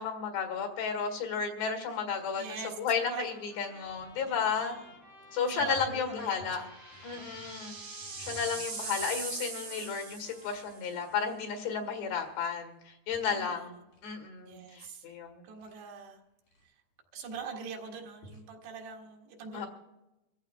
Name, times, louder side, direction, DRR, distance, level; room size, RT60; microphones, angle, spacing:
voice 1, 0.0-4.8 5.3-6.6 7.0-7.8 8.2-15.5 19.5-19.7, left 6 dB, 90° left, 3 dB, 3.9 m, -33 dB
sound 1, 1.0-1.1 2.1-2.3 2.5-2.9 3.8-4.1 4.5-4.7 5.6-9.3 9.6-9.9 10.3-10.7 11.1-11.5 12.1-12.3 12.9-13.4 13.7-14.2 14.5-14.9 15.4-15.8 16.5-16.6 17.0-17.4 18.1-18.5, equal, 65° left, 5.0 m, -55 dB
voice 2, 2.4-2.8 3.1-3.3 4.2-4.9 5.4-6.7 7.1-7.3 8.5-8.6 13.3-13.9 14.5-15.1 15.4-16.2 16.6-16.7 17.1-19.7, right 6 dB, 85° right, 0 dB, 3.8 m, -43 dB
Trumpet, 2.9-11.6, left 1 dB, 15° left, 5.3 m, -56 dB
sound 2, 3.9-4.2 4.6-4.7 6.1-10.8, right 4 dB, 55° right, 5.5 m, -41 dB
26.5 x 14.5 x 2.3 m, 0.97 s
omnidirectional pair, 4.6 m